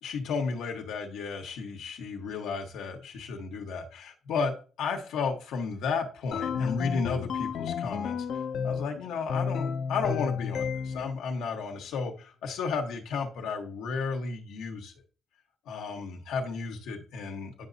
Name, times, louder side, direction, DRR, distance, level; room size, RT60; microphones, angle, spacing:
voice 1, 0.0-14.9 15.7-17.7, left 5 dB, 85° left, 2 dB, 1.2 m, -33 dB
sound 1, 6.3-8.9 9.3-11.2, left 6 dB, 50° left, 0.5 m, -32 dB
9.3 x 5.1 x 2.7 m, 0.36 s
cardioid pair, 175°, 0 cm